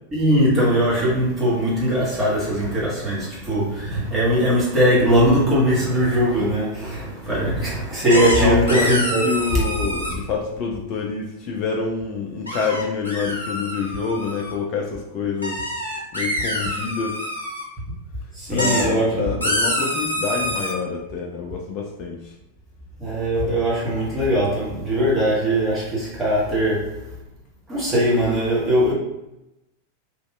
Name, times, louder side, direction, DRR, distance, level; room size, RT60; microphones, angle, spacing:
voice 1, 0.1-9.2 9.5-9.6 18.3-19.4 23.0-27.2 27.7-28.9, equal, 20° right, 1.3 m, -20 dB
sound 1, 8.1-10.1 12.5-14.5 15.4-17.6 18.4-18.9 19.4-20.7, left 1 dB, 80° left, 0.6 m, -26 dB
voice 2, 8.1-9.0 9.2-15.7 16.1-17.3 18.5-22.3, left 5 dB, 35° left, 0.4 m, -27 dB
3.0 x 2.7 x 2.3 m
figure-of-eight pair, 90°, 0 cm